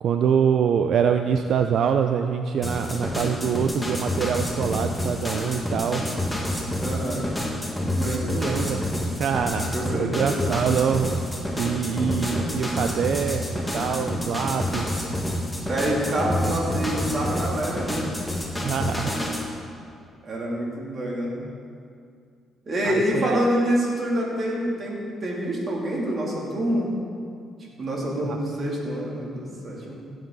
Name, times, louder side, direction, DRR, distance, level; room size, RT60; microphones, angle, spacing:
voice 1, 0.0-6.0 7.8-8.8 9.2-11.1 11.6-14.9 18.6-19.2 22.8-23.4 28.2-28.4, right 7 dB, 70° right, 6 dB, 0.4 m, -25 dB
sound 1, 2.6-19.5, left 1 dB, 5° left, 1.8 m, -28 dB
voice 2, 6.7-7.3 7.9-8.7 9.7-10.4 12.7-12.8 15.7-18.1 20.2-21.3 22.7-26.9 27.8-30.0, right 1 dB, 45° right, -3 dB, 2.9 m, -27 dB
16.0 x 7.8 x 4.0 m, 2.3 s
cardioid pair, 90°, 0 cm